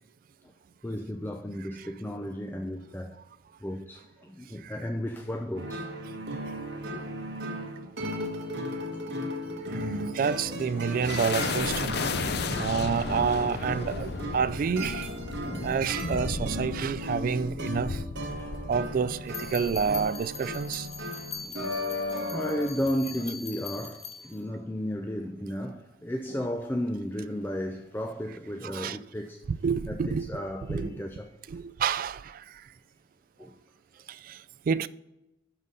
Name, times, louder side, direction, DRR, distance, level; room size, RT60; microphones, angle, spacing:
voice 1, 0.8-3.2 3.6-5.9 6.9-7.0 8.5-8.7 15.4-15.8 18.4-18.5 19.0-19.1 21.4-21.6 22.3-29.4 29.9-31.3 33.4-33.5, equal, 10° left, 0.5 m, -34 dB
sound 1, 5.6-22.7, equal, 65° right, 1.5 m, -36 dB
voice 2, 9.6-15.1 15.6-18.0 18.7-20.9 28.6-29.0 29.5-30.3 30.7-30.9 31.5-32.6 34.1-34.9, right 6 dB, 50° right, 0.3 m, -29 dB
sound 2, 10.2-21.0, left 3 dB, 60° left, 0.7 m, -35 dB
sound 3, 19.3-24.4, left 6 dB, 35° left, 1.0 m, -42 dB
11.5 x 4.1 x 5.3 m
head